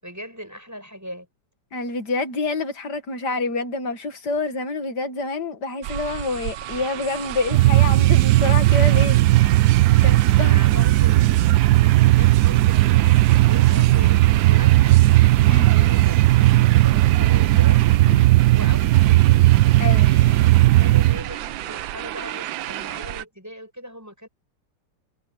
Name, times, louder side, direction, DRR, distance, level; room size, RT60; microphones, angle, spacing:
voice 1, 0.0-1.3 9.9-10.1 10.5-11.4 11.7-15.1 15.4-17.8 18.5-19.5 20.0-24.3, equal, 10° right, 7.6 m, -39 dB
voice 2, 1.7-9.2 10.0-10.9 15.5-15.7 18.1-18.2 19.8-20.1, left 3 dB, 60° left, 2.4 m, -27 dB
sound 1, 5.8-23.2, right 14 dB, 90° right, 1.4 m, -32 dB
sound 2, 7.5-21.2, right 17 dB, 70° right, 1.0 m, -16 dB
omnidirectional pair, 2.0 m